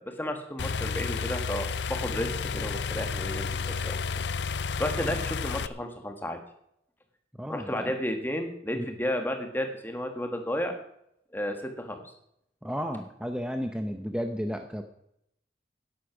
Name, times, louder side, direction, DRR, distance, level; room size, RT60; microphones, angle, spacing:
voice 1, 0.0-4.0 4.6-6.4 7.5-10.7 11.3-12.0, equal, 10° left, 5 dB, 1.7 m, -32 dB
sound 1, 0.6-5.7, left 5 dB, 70° left, 0.6 m, -31 dB
voice 2, 7.4-7.9 8.7-8.9 12.6-14.8, equal, 5° right, 5 dB, 0.7 m, -33 dB
13.0 x 10.0 x 6.1 m, 0.75 s
head